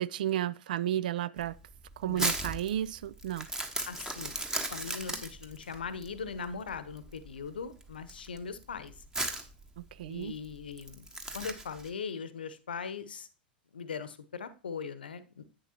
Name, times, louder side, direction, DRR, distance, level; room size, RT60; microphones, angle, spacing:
voice 1, 0.0-1.6 2.0-3.5 9.8-10.4, right 12 dB, 60° right, 0.4 m, -33 dB
Crumpling crinkling, 1.4-11.9, right 2 dB, 10° right, 1.4 m, -37 dB
voice 2, 2.1-2.4 3.8-4.4 4.7-8.9 10.1-11.1 11.3-13.3 13.7-15.5, left 5 dB, 70° left, 0.9 m, -40 dB
10.5 x 8.7 x 2.9 m
figure-of-eight pair, 95°, 5 cm